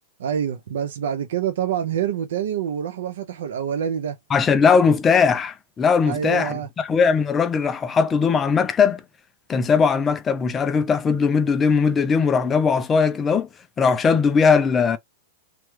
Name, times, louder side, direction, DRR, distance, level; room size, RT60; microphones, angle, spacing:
voice 1, 0.2-4.2 6.1-6.7, right 8 dB, 75° right, 0.5 m, -26 dB
voice 2, 4.3-9.0 9.5-13.5 13.8-15.0, left 5 dB, 15° left, 0.4 m, -19 dB
3.3 x 2.3 x 3.1 m
supercardioid pair, 180°, 0 cm